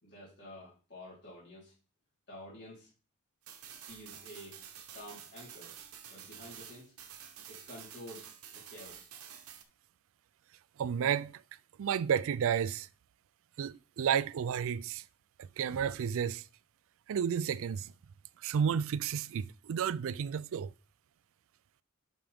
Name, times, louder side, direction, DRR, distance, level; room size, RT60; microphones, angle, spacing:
voice 1, 0.0-1.7 2.3-2.9 3.7-4.6 4.9-5.8 6.1-6.9 7.5-8.3 8.5-9.1, left 1 dB, 55° left, 3.6 m, -50 dB
sound 1, 3.4-9.6, right 9 dB, 80° right, 1.0 m, -50 dB
voice 2, 10.8-11.4 11.8-12.9 13.6-15.0 15.4-16.4 17.1-17.9 18.4-20.7, right 8 dB, 65° right, 0.4 m, -32 dB
11.5 x 5.0 x 3.5 m
head